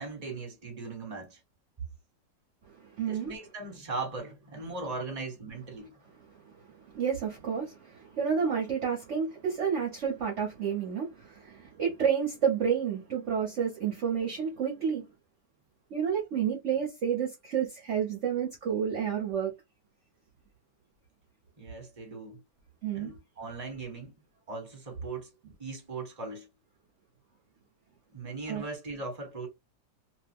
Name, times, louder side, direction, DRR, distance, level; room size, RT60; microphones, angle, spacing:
voice 1, 0.0-1.4 3.1-5.9 21.6-22.4 22.9-24.1 24.5-25.3 25.6-26.5 28.1-29.5, right 3 dB, 25° right, 1.2 m, -39 dB
voice 2, 2.8-3.3 6.7-15.1 15.9-19.5 22.8-23.1 28.5-28.6, right 7 dB, 50° right, 0.9 m, -30 dB
2.8 x 2.2 x 3.4 m
omnidirectional pair, 1.9 m